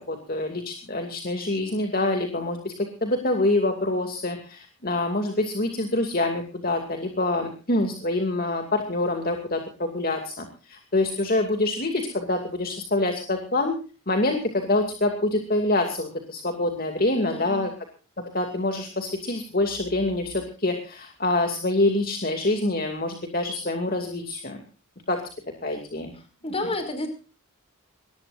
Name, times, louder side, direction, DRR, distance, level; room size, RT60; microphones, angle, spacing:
voice 1, 0.0-13.7 14.1-17.7 18.3-24.6 25.1-25.2 25.6-26.1, left 2 dB, 40° left, 5 dB, 2.5 m, -26 dB
voice 2, 17.2-17.6 26.4-27.1, left 2 dB, 25° left, 7 dB, 5.4 m, -30 dB
22.5 x 19.5 x 2.6 m, 0.36 s
head